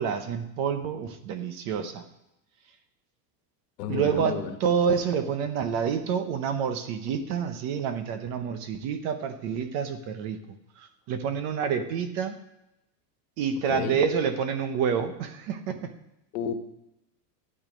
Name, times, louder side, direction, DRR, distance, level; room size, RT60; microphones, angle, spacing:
voice 1, 0.0-2.1 3.9-10.4 10.8-12.3 13.4-15.9, right 7 dB, 35° right, 10 dB, 0.7 m, -28 dB
voice 2, 3.8-4.6 13.7-14.0 16.3-16.5, left 7 dB, 75° left, 6 dB, 1.7 m, -31 dB
12.0 x 8.8 x 5.1 m, 0.88 s
supercardioid pair, 180°, 48 cm